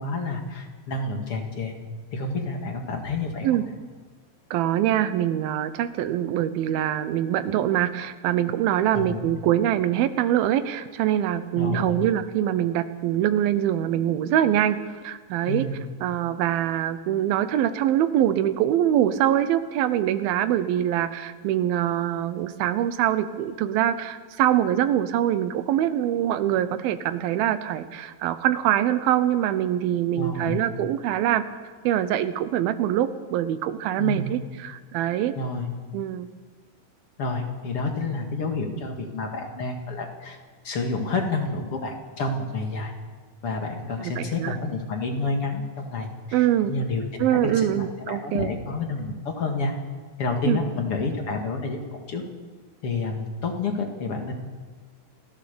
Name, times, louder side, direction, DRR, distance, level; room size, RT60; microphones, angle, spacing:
voice 1, 0.0-1.7 2.1-3.6 8.9-9.2 11.6-12.0 15.5-15.8 30.1-30.7 34.0-34.4 35.4-35.7 37.2-40.4 40.6-42.9 43.4-49.7 50.2-52.2 52.8-54.3, left 3 dB, 45° left, 3 dB, 2.6 m, -29 dB
voice 2, 4.5-14.8 15.0-15.7 16.0-31.4 31.8-35.3 35.9-36.3 44.0-44.6 46.3-46.7 47.2-48.5 50.4-50.6, right 11 dB, 85° right, 12 dB, 2.8 m, -24 dB
28.5 x 13.0 x 6.9 m, 1.5 s
omnidirectional pair, 4.2 m